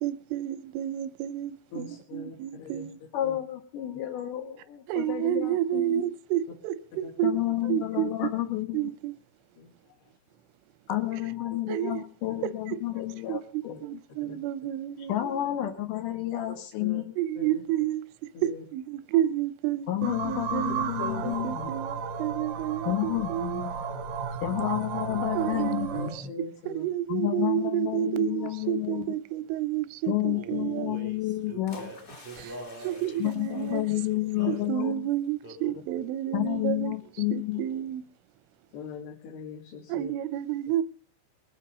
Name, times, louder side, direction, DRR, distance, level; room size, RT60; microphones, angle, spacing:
voice 1, 0.0-3.0 4.9-8.3 8.7-9.1 11.7-12.0 12.4-12.8 13.3-15.1 17.2-18.0 18.4-20.9 21.2-23.6 25.3-26.1 26.7-31.0 32.4-33.8 34.5-36.9 37.3-38.0 39.9-40.8, right 12 dB, 85° right, 3.3 m, -30 dB
voice 2, 1.7-2.9 3.2-3.4 7.0-7.4 9.6-10.1 11.5-11.6 12.3-12.4 13.7-13.8 14.2-14.4 16.8-17.0 17.4-17.5 18.3-18.6 21.0-21.4 25.5-25.6 25.9-26.9 38.7-40.1, left 4 dB, 65° left, 4.0 m, -42 dB
voice 3, 3.1-6.0 7.2-8.9 10.9-14.0 15.1-17.1 19.9-21.7 22.9-23.9 24.4-26.1 27.1-29.1 30.1-31.9 33.2-35.1 36.3-37.7, left 14 dB, 85° left, 1.9 m, -30 dB
sound 1, 20.0-26.2, right 6 dB, 70° right, 1.8 m, -33 dB
Male singing, 30.3-34.7 35.4-35.8 36.5-36.8 37.0-38.0, right 3 dB, 10° right, 1.1 m, -44 dB
sound 2, 31.7-34.7 35.0-35.2, left 2 dB, 35° left, 1.4 m, -52 dB
20.5 x 8.9 x 5.5 m
omnidirectional pair, 5.5 m